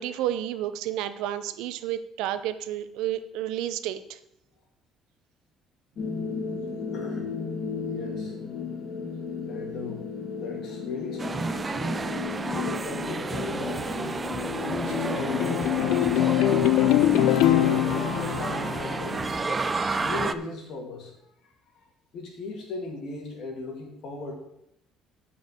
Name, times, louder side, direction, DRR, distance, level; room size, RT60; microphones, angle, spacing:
voice 1, 0.0-4.2, right 12 dB, 90° right, 12 dB, 0.7 m, -31 dB
sound 1, 6.0-17.7, left 6 dB, 45° left, 2.1 m, -34 dB
voice 2, 6.9-7.3 7.8-8.4 9.5-10.1 10.3-11.6 12.5-13.9 14.6-16.5 17.0-19.3 19.9-21.1 22.1-24.4, left 3 dB, 65° left, 2 dB, 2.7 m, -37 dB
sound 2, 11.2-20.3, right 4 dB, 25° right, 0.5 m, -31 dB
sound 3, 14.2-19.5, left 13 dB, 85° left, 0.5 m, -24 dB
8.8 x 5.5 x 7.6 m, 0.80 s
cardioid pair, 120°, 0 cm